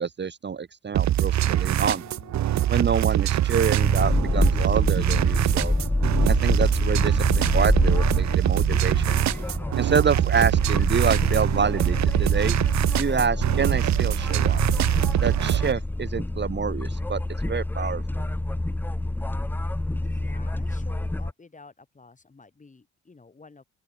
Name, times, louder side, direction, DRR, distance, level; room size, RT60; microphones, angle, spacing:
voice 1, 0.0-2.0 2.7-5.7 6.3-9.2 9.8-12.6 13.0-14.6 15.2-18.0, right 6 dB, 35° right, 1.4 m, -27 dB
sound 1, 0.9-15.7, right 13 dB, 65° right, 1.0 m, -23 dB
sound 2, 1.1-11.2, left 8 dB, 55° left, 7.7 m, -56 dB
sound 3, 3.8-21.3, left 1 dB, 5° left, 0.7 m, -27 dB
voice 2, 20.0-23.6, left 4 dB, 25° left, 5.3 m, -50 dB
open air
cardioid pair, 90°, 30 cm